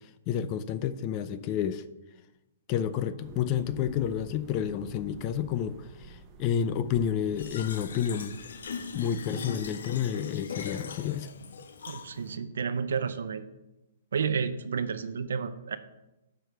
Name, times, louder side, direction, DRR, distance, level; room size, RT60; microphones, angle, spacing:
voice 1, 0.3-1.8 2.7-8.4 8.9-11.3, left 9 dB, 30° left, 12 dB, 0.5 m, -30 dB
sound 1, 3.2-9.7, right 4 dB, 25° right, 1.1 m, -49 dB
Fill (with liquid), 7.4-12.4, left 6 dB, 80° left, 0.8 m, -40 dB
voice 2, 11.9-13.4 14.1-15.8, right 6 dB, 85° right, 10 dB, 0.6 m, -31 dB
7.8 x 4.9 x 6.6 m, 0.97 s
hypercardioid pair, 150°, 0 cm